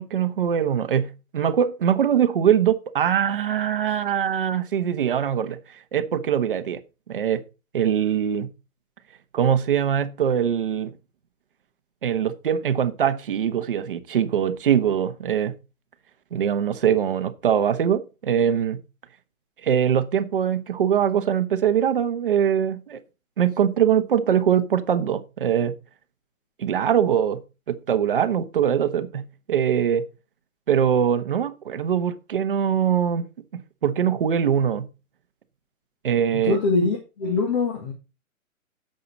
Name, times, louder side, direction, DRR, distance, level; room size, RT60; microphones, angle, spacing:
voice 1, 0.0-5.6 5.9-6.8 7.1-7.4 7.7-8.5 9.3-10.9 12.0-15.5 16.3-18.8 19.6-23.0 23.4-25.8 26.6-27.4 27.7-30.1 30.7-33.2 33.8-34.9 36.0-36.6, right 8 dB, 40° right, 1.1 m, -22 dB
voice 2, 36.3-37.9, left 3 dB, 30° left, 1.8 m, -23 dB
11.0 x 7.7 x 4.1 m
hypercardioid pair, 175°, 42 cm